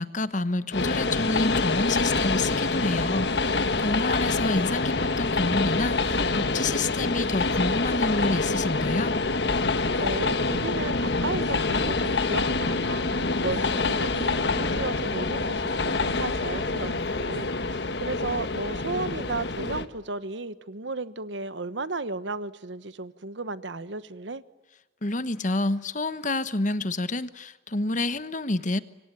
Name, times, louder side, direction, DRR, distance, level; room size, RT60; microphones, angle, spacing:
voice 1, 0.0-9.1 25.0-28.8, left 2 dB, 40° left, 14 dB, 1.1 m, -28 dB
Train, 0.7-19.9, left 3 dB, 60° left, 1.5 m, -26 dB
voice 2, 10.0-24.4, right 3 dB, 75° right, 14 dB, 1.2 m, -34 dB
27.0 x 24.5 x 9.1 m, 1.1 s
head